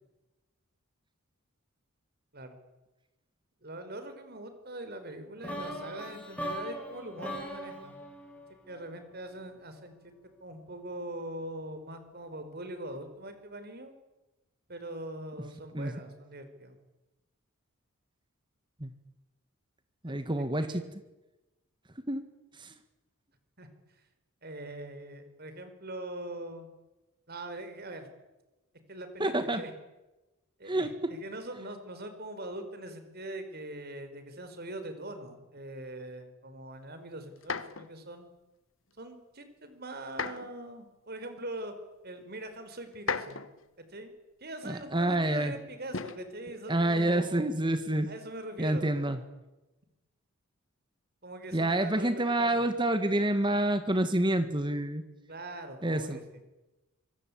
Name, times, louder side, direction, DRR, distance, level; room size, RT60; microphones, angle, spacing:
voice 1, 3.6-7.9 8.5-10.1 10.4-13.9 14.7-16.8 20.1-20.2 20.6-20.9 23.6-23.7 24.4-26.7 27.3-28.1 28.9-29.7 30.6-38.3 39.0-41.7 42.0-43.4 43.8-44.1 44.4-47.5 48.1-49.1 51.2-52.5 55.3-56.2, right 1 dB, 45° right, 9 dB, 4.9 m, -42 dB
sound 1, 5.4-9.4, equal, 5° left, 6.3 m, -40 dB
voice 2, 20.0-20.8 22.1-22.3 22.6-22.7 29.2-29.6 30.7-31.1 44.6-45.5 46.7-48.1 48.6-49.2 51.5-55.0 55.8-56.2, right 1 dB, 20° right, 9 dB, 1.7 m, -28 dB
sound 2, 37.4-37.9 40.1-40.6 41.6-41.7 42.9-43.7 45.9-46.3 47.5-47.9, left 5 dB, 60° left, 1.4 m, -36 dB
26.0 x 24.0 x 8.7 m, 1.0 s
head